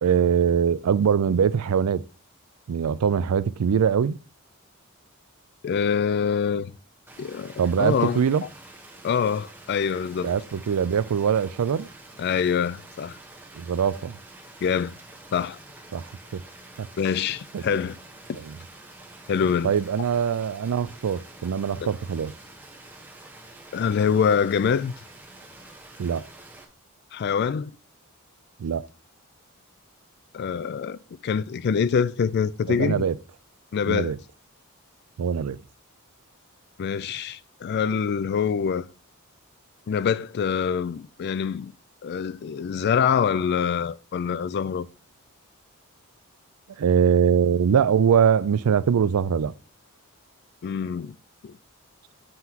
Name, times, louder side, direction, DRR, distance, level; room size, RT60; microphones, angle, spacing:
voice 1, 0.0-2.0 2.7-4.2 7.6-8.4 10.2-11.9 13.6-14.2 15.9-16.1 16.3-16.4 16.8-16.9 17.5-17.8 18.4-18.6 19.6-22.3 26.0-26.3 28.6-28.9 32.7-33.1 33.9-34.2 35.2-35.6 46.8-49.5, right 7 dB, 80° right, 0.4 m, -22 dB
voice 2, 5.6-6.7 7.2-8.2 9.0-10.3 12.2-13.2 14.6-14.9 15.3-15.6 17.0-18.0 18.3-18.4 19.3-19.7 21.8-21.9 23.7-24.9 27.1-27.7 30.3-33.1 33.7-34.1 36.8-38.9 39.9-41.7 42.0-44.9 50.6-51.2 51.4-51.5, left 6 dB, 50° left, 0.3 m, -25 dB
sound 1, 7.1-26.6, right 2 dB, 10° right, 1.0 m, -47 dB
7.9 x 5.7 x 2.9 m
head